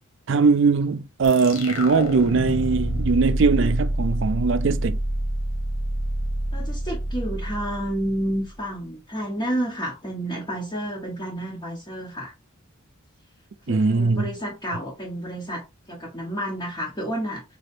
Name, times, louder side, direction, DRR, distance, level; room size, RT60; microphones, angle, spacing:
voice 1, 0.3-5.0 13.7-14.3, right 4 dB, 60° right, 0.4 m, -20 dB
sound 1, 1.2-8.5, right 1 dB, 80° left, 1.1 m, -27 dB
voice 2, 6.5-12.3 13.7-17.4, right 1 dB, 20° left, 1.2 m, -30 dB
3.8 x 3.3 x 2.5 m
head